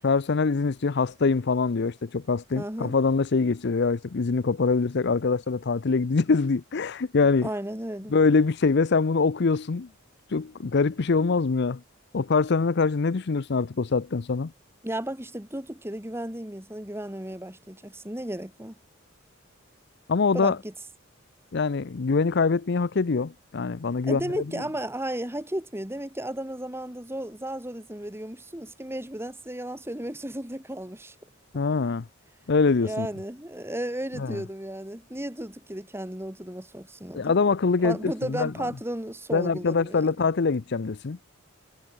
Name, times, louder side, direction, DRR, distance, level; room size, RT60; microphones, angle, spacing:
voice 1, 0.0-7.5 8.1-9.9 10.3-11.8 12.1-14.5 20.1-20.6 21.5-24.4 31.5-32.1 32.5-33.1 34.2-34.4 37.1-38.5 39.3-41.2, left 4 dB, 55° left, 0.6 m, -24 dB
voice 2, 2.5-3.0 7.4-8.2 14.8-18.8 20.3-20.7 24.1-31.1 32.8-37.4 37.8-40.1, right 1 dB, 10° right, 2.9 m, -34 dB
head